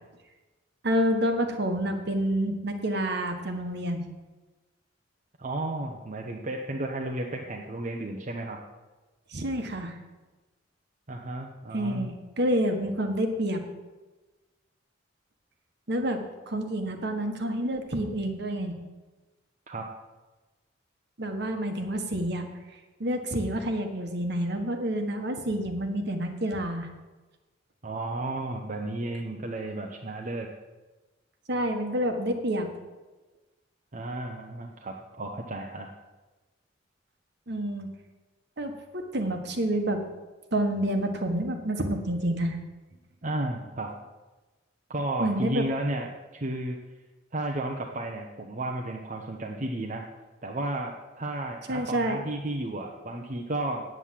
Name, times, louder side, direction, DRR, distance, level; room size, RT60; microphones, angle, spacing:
voice 1, 0.8-4.0 9.3-9.9 11.7-13.6 15.9-18.7 21.2-22.5 23.0-26.9 31.5-32.7 37.5-37.9 38.6-40.0 40.5-42.6 45.2-45.6 51.7-52.2, right 1 dB, 60° right, 5 dB, 1.4 m, -28 dB
voice 2, 5.4-8.6 11.1-12.1 19.7-19.9 27.8-30.5 33.9-35.9 43.2-43.9 44.9-46.8 47.3-50.0 50.4-53.8, right 2 dB, 45° right, 1 dB, 0.9 m, -33 dB
9.0 x 8.5 x 7.5 m, 1.2 s
head